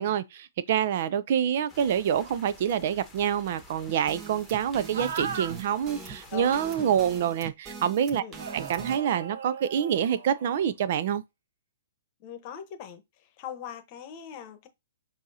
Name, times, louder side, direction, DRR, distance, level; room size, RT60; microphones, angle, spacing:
voice 1, 0.0-8.2 8.5-11.2, right 9 dB, 55° right, 0.4 m, -26 dB
sound 1, 1.7-7.2, left 2 dB, 10° left, 1.2 m, -52 dB
sound 2, 3.9-9.0, right 5 dB, 25° right, 0.9 m, -42 dB
sound 3, 4.9-5.6 6.4-6.9 8.4-10.7, right 6 dB, 70° right, 0.9 m, -38 dB
voice 2, 6.3-6.9 8.2-8.4 12.2-14.7, left 8 dB, 40° left, 0.9 m, -41 dB
6.3 x 2.7 x 2.7 m
hypercardioid pair, 130°, 0 cm